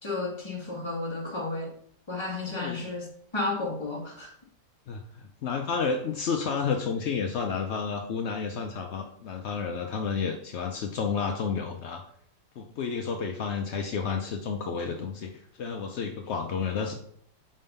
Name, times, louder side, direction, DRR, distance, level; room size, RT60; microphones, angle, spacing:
voice 1, 0.0-1.7 2.1-3.0 3.3-4.3, left 2 dB, 15° left, -2 dB, 1.4 m, -32 dB
voice 2, 4.9-12.0 12.6-16.9, left 5 dB, 70° left, 3 dB, 0.6 m, -31 dB
5.1 x 3.8 x 5.1 m, 0.65 s
omnidirectional pair, 1.8 m